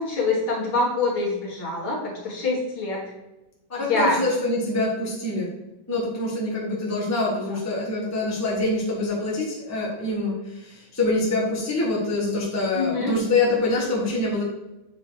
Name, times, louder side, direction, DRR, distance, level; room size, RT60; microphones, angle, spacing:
voice 1, 0.0-3.0 3.8-4.2 12.7-13.2, left 3 dB, 75° left, -4 dB, 2.5 m, -25 dB
voice 2, 3.7-5.5 5.9-14.4, left 2 dB, 10° left, -5 dB, 1.2 m, -25 dB
7.8 x 3.1 x 4.6 m, 0.96 s
omnidirectional pair, 2.3 m